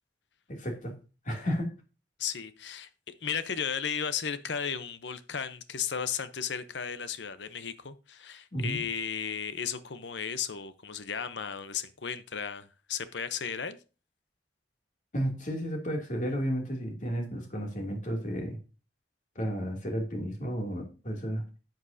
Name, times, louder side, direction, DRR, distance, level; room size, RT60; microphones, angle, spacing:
voice 1, 0.5-1.0 1.2-1.7 8.5-8.8 15.1-18.6 19.3-21.4, equal, 45° left, 2 dB, 2.7 m, -32 dB
voice 2, 2.2-13.8, left 7 dB, 75° left, 12 dB, 0.8 m, -35 dB
11.0 x 8.0 x 2.7 m, 0.33 s
head